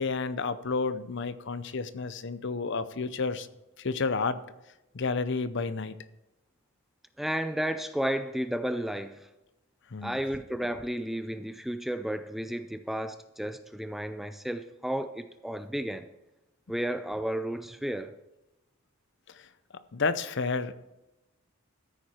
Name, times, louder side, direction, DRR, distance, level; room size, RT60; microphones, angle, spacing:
voice 1, 0.0-3.5 3.8-4.4 4.9-6.0 9.9-10.2 19.3-19.5 19.9-20.7, left 4 dB, 55° left, 0.6 m, -30 dB
voice 2, 7.2-9.3 10.0-16.1 16.7-18.1, equal, ahead, 0.4 m, -32 dB
14.0 x 8.9 x 4.4 m
head